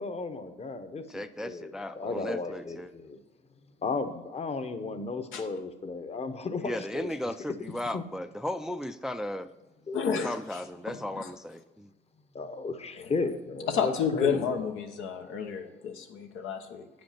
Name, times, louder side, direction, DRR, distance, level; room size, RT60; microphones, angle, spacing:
voice 1, 0.0-3.2 3.8-7.1 7.9-8.0 9.9-10.3 12.3-14.4, left 4 dB, 30° left, 9 dB, 0.8 m, -34 dB
voice 2, 1.1-2.9 6.6-9.5 10.2-11.9, left 1 dB, 5° right, 10 dB, 0.3 m, -35 dB
voice 3, 9.9-11.3 13.0-13.1 13.7-16.9, left 7 dB, 90° left, 4 dB, 1.0 m, -31 dB
8.5 x 5.2 x 5.7 m, 1.1 s
cardioid pair, 90°, 20 cm